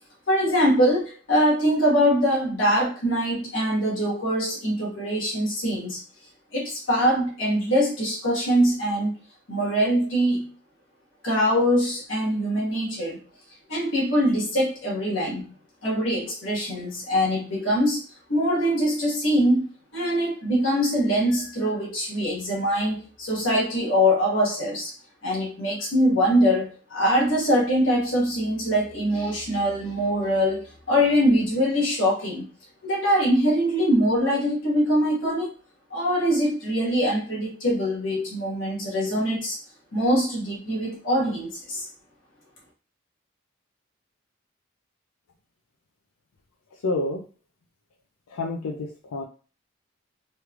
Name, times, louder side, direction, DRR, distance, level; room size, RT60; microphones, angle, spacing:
voice 1, 0.3-6.0 6.5-9.2 9.5-10.5 11.2-13.2 13.7-15.5 15.8-18.0 18.3-19.6 19.9-24.9 25.2-32.4 32.8-35.5 35.9-39.6 39.9-41.9, equal, 60° left, -4 dB, 1.4 m, -23 dB
voice 2, 46.7-47.2 48.3-49.2, left 2 dB, 85° left, 0 dB, 0.4 m, -29 dB
3.1 x 3.1 x 2.4 m, 0.37 s
head